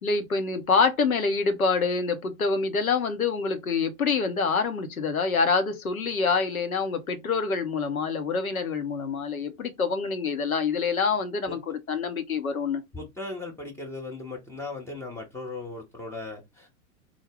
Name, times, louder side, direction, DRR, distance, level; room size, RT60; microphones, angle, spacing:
voice 1, 0.0-12.8, left 4 dB, 85° left, 0.8 m, -26 dB
voice 2, 12.9-16.7, left 3 dB, 5° left, 0.6 m, -37 dB
3.7 x 2.0 x 3.3 m
figure-of-eight pair, 95°, 41 cm